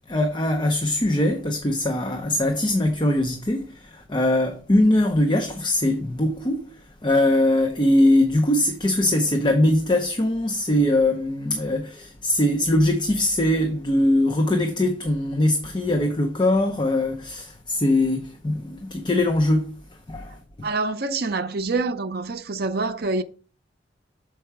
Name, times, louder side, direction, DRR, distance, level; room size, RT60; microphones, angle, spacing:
voice 1, 0.1-6.7 7.0-19.7 20.1-20.4, left 1 dB, 25° left, 0.6 m, -21 dB
voice 2, 20.6-23.2, right 3 dB, 55° right, 0.6 m, -26 dB
6.8 x 4.7 x 4.6 m
head